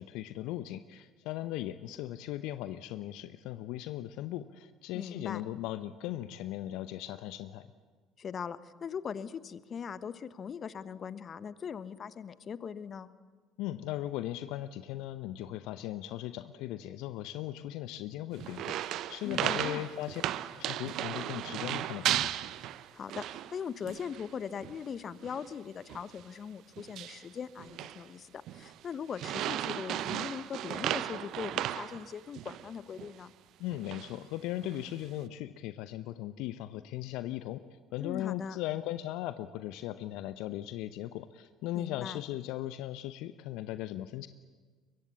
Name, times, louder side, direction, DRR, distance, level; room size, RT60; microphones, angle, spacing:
voice 1, 0.0-7.7 13.6-20.2 20.5-22.3 33.6-37.6 37.9-44.3, left 14 dB, 70° left, 13 dB, 0.7 m, -38 dB
voice 2, 4.9-5.4 8.2-13.1 19.2-19.9 22.9-33.3 38.0-38.6 41.7-42.2, left 7 dB, 45° left, 15 dB, 1.1 m, -40 dB
sound 1, 18.4-23.6 23.9-24.3 24.6-24.8 25.2-25.5 25.9-26.1 26.8-27.2 27.6-28.0 28.5-28.7 29.1-32.7 33.0-33.1 33.7-34.1 34.6-35.1, right 12 dB, 60° right, 0.8 m, -35 dB
24.0 x 22.5 x 8.5 m, 1.4 s
hypercardioid pair, 60°, 0 cm